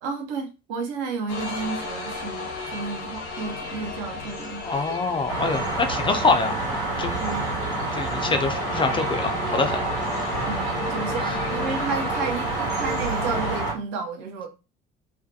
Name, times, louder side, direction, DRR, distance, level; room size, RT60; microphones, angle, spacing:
voice 1, 0.0-5.0 7.2-7.5 10.5-14.5, right 4 dB, 65° right, 0.7 m, -32 dB
sound 1, 1.3-13.6, left 3 dB, 70° left, 0.7 m, -35 dB
voice 2, 4.6-6.6 7.0-7.1 7.8-9.8 11.2-11.3, left 4 dB, 20° left, 0.4 m, -25 dB
sound 2, 5.3-13.7, right 2 dB, 90° right, 1.2 m, -28 dB
2.4 x 2.1 x 2.6 m
figure-of-eight pair, 55°, 30 cm